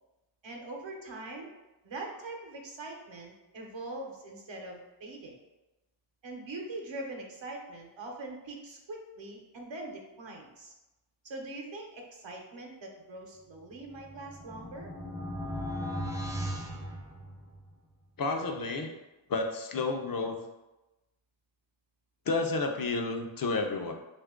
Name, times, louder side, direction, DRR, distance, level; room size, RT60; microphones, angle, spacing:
voice 1, 0.4-1.5 1.8-5.4 6.2-10.7 11.2-14.9, right 2 dB, 75° right, 0 dB, 0.8 m, -42 dB
sound 1, 13.8-17.7, equal, 10° right, 0.3 m, -37 dB
voice 2, 18.2-18.9 19.3-20.4 22.3-23.9, left 3 dB, 50° left, 3 dB, 0.5 m, -31 dB
3.0 x 2.4 x 3.5 m, 1.0 s
wide cardioid pair, 95°, 45 cm